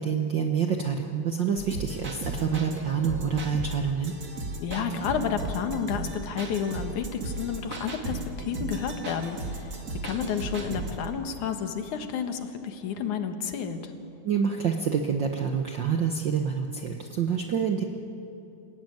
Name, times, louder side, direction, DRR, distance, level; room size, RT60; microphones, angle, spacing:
voice 1, 0.0-4.1 14.2-17.8, right 6 dB, 60° right, 3 dB, 1.2 m, -27 dB
sound 1, 1.6-11.1, right 2 dB, 35° right, 2.0 m, -36 dB
voice 2, 4.6-13.9, left 7 dB, 75° left, 7 dB, 2.9 m, -31 dB
28.5 x 16.5 x 9.3 m, 2.7 s
omnidirectional pair, 3.5 m